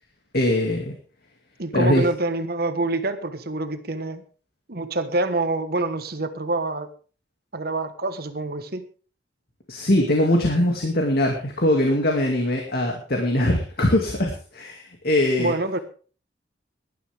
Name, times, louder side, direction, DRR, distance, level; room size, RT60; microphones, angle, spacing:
voice 1, 0.3-0.9 1.7-2.0 9.7-15.5, left 1 dB, 55° left, 2 dB, 2.3 m, -21 dB
voice 2, 1.6-4.2 4.7-6.9 7.5-8.8 15.4-15.8, right 2 dB, 55° right, 9 dB, 1.4 m, -26 dB
18.0 x 12.0 x 3.5 m, 0.38 s
head